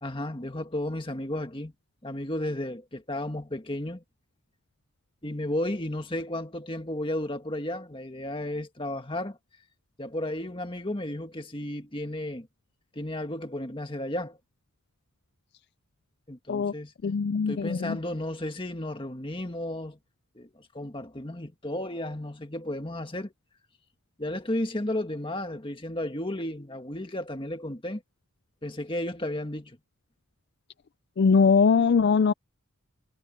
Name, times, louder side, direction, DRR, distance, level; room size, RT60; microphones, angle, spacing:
voice 1, 0.0-1.7 2.0-4.0 5.2-9.4 10.0-12.5 12.9-14.4 16.3-16.9 17.5-20.0 20.4-23.3 24.2-28.0 28.6-29.8, left 1 dB, 25° left, 1.8 m, -33 dB
voice 2, 17.0-18.0 31.2-32.3, left 5 dB, 50° left, 0.4 m, -21 dB
head